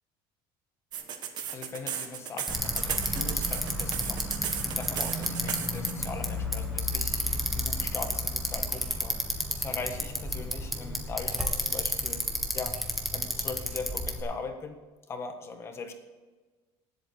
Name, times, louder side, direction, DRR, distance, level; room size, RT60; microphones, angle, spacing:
sound 1, 0.9-5.9, right 8 dB, 40° right, 1.4 m, -35 dB
voice 1, 1.5-12.2 12.5-12.8 13.1-14.8 15.1-15.9, left 4 dB, 25° left, 6 dB, 1.5 m, -40 dB
Bicycle, 2.5-14.2, equal, ahead, 1.4 m, -31 dB
18.5 x 8.2 x 4.9 m, 1.3 s
cardioid pair, 175°, 11 cm